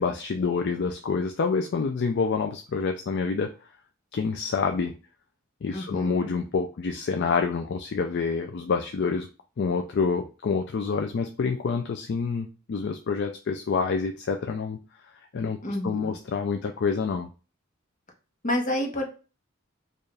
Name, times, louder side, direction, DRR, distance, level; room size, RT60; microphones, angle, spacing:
voice 1, 0.0-3.5 4.1-4.9 5.6-9.3 9.6-14.8 15.2-17.3, left 5 dB, 55° left, 5 dB, 0.4 m, -27 dB
voice 2, 5.7-6.3 15.6-16.1 18.4-19.0, left 1 dB, 40° left, 2 dB, 1.0 m, -29 dB
4.4 x 2.5 x 3.3 m, 0.33 s
head